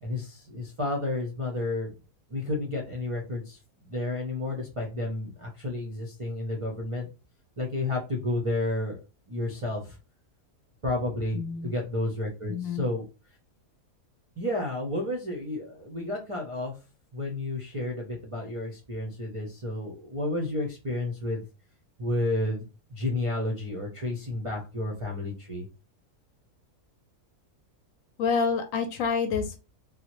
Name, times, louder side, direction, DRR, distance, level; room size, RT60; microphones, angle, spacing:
voice 1, 0.0-1.9 2.3-7.1 7.6-9.0 9.3-10.0 10.8-13.0 14.4-16.7 17.1-21.4 22.0-25.7, left 2 dB, 55° right, 0 dB, 0.3 m, -31 dB
voice 2, 11.3-11.7 12.5-12.8 28.2-29.6, left 5 dB, 70° left, 7 dB, 0.9 m, -28 dB
3.6 x 2.1 x 2.9 m, 0.31 s
omnidirectional pair, 1.6 m